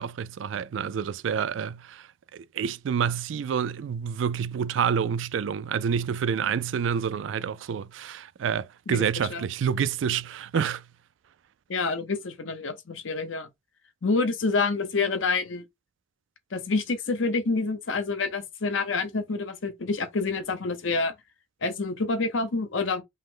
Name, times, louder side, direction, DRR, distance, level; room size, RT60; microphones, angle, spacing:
voice 1, 0.0-2.0 2.3-10.8, right 7 dB, 75° right, 0.3 m, -28 dB
voice 2, 8.9-9.4 11.7-13.5 14.0-15.6 16.5-21.1 21.6-23.0, left 3 dB, 80° left, 0.8 m, -27 dB
5.3 x 2.1 x 3.7 m
head